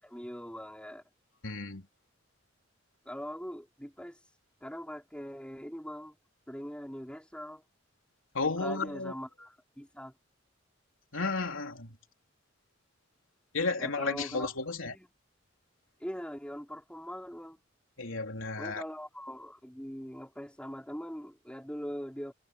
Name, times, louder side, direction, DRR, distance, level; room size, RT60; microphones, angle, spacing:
voice 1, 0.0-1.0 3.0-4.2 4.6-6.2 6.5-7.6 8.4-10.1 13.8-14.5 14.9-15.1 16.0-17.6 18.6-22.3, equal, 5° left, 4.8 m, -41 dB
voice 2, 1.4-1.8 8.3-9.1 11.1-12.0 13.5-14.9 18.0-18.8, left 3 dB, 90° left, 3.3 m, -33 dB
head